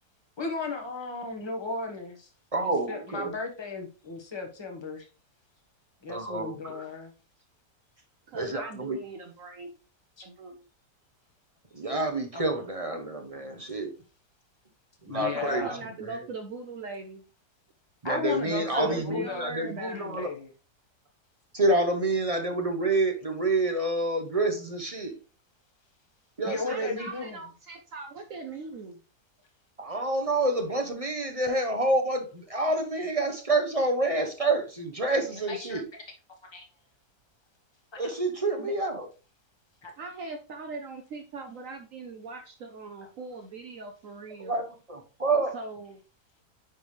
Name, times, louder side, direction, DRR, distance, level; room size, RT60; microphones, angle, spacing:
voice 1, 0.4-2.3 2.6-5.1 6.0-7.1 10.2-10.3 12.3-12.4 15.1-15.8 18.0-20.5 26.5-27.4 35.5-35.8 36.5-36.6 37.9-38.0 39.8-39.9, left 4 dB, 15° left, 2 dB, 1.2 m, -35 dB
voice 2, 2.5-3.3 6.1-6.8 8.3-9.0 11.7-13.9 15.0-15.7 16.0-16.2 18.0-20.3 21.5-25.1 26.4-27.0 29.8-35.9 38.0-39.1 44.4-45.5, right 2 dB, 35° right, 5 dB, 0.6 m, -28 dB
voice 3, 8.3-9.7 10.2-10.6 15.1-17.2 18.5-20.1 26.7-29.0 38.6-38.7 40.0-44.6 45.5-46.0, right 3 dB, 60° right, 6 dB, 1.0 m, -40 dB
9.8 x 3.6 x 3.2 m, 0.33 s
omnidirectional pair, 1.8 m